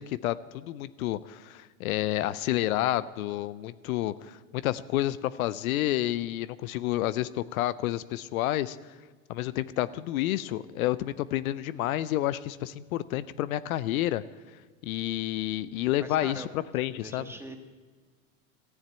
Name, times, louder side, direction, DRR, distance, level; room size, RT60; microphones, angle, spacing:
voice 1, 0.0-9.0 9.3-14.2 14.8-17.3, left 14 dB, 75° left, 16 dB, 0.6 m, -30 dB
voice 2, 16.0-16.5 16.8-17.6, right 1 dB, 5° right, 5 dB, 1.5 m, -42 dB
14.5 x 7.3 x 8.7 m, 1.4 s
hypercardioid pair, 105°, 42 cm